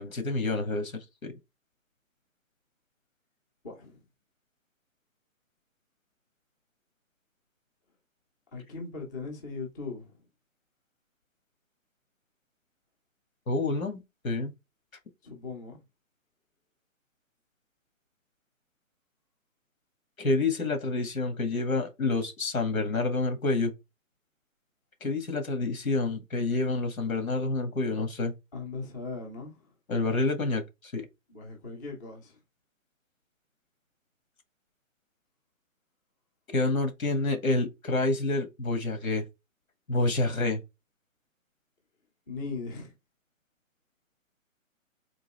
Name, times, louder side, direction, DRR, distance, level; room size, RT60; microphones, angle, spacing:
voice 1, 0.0-1.4 13.5-14.5 20.2-23.7 25.0-28.3 29.9-31.1 36.5-39.3 39.9-40.6, left 3 dB, 90° left, 1.8 m, -28 dB
voice 2, 3.6-4.0 8.5-10.2 15.2-15.8 28.5-29.5 31.3-32.4 42.3-42.9, left 4 dB, 15° left, 0.7 m, -39 dB
3.8 x 2.8 x 4.1 m
hypercardioid pair, 155°, 40 cm